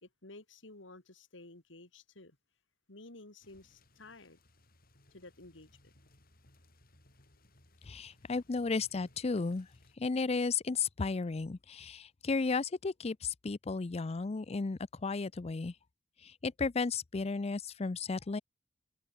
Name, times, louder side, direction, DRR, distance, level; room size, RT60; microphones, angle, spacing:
voice 1, 0.0-2.4 2.9-4.4 5.1-5.9, left 2 dB, 70° left, 2.7 m, -53 dB
sound 1, 3.4-10.0, left 1 dB, 50° left, 6.0 m, -65 dB
voice 2, 7.9-9.7 10.0-15.7 16.2-18.4, left 4 dB, 35° left, 0.5 m, -34 dB
head